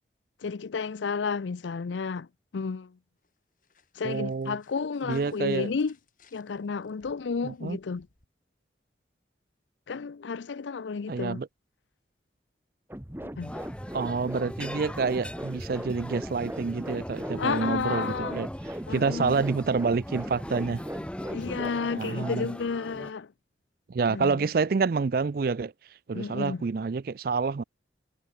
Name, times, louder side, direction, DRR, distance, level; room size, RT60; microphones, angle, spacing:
voice 1, 0.4-2.3 2.5-3.0 4.0-5.9 6.3-8.1 9.9-11.4 13.2-13.5 17.4-18.4 18.9-19.5 21.3-23.3 24.1-24.5 26.1-26.6, left 5 dB, 80° left, 0.5 m, -32 dB
sound 1, 3.2-8.3, left 4 dB, 45° left, 3.5 m, -64 dB
voice 2, 4.0-4.6 5.0-5.7 7.4-7.8 11.1-11.5 13.9-20.8 21.9-22.5 23.9-25.7 26.1-27.6, right 4 dB, 50° right, 0.4 m, -28 dB
sound 2, 12.9-21.7, equal, 10° right, 1.4 m, -39 dB
sound 3, 13.4-23.1, left 1 dB, 5° left, 0.7 m, -40 dB
head